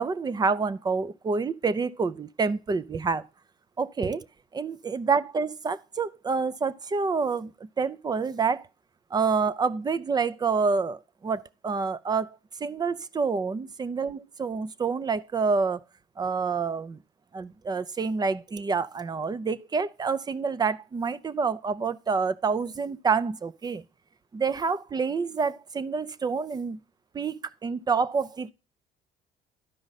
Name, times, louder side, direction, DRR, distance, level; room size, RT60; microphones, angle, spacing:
voice 1, 0.0-3.3 3.8-4.3 4.5-7.5 7.8-8.6 9.1-15.8 16.2-17.0 17.3-23.8 24.3-26.8 27.1-28.5, right 5 dB, 25° right, 0.5 m, -28 dB
12.0 x 5.0 x 4.1 m
cardioid pair, 110°, 17 cm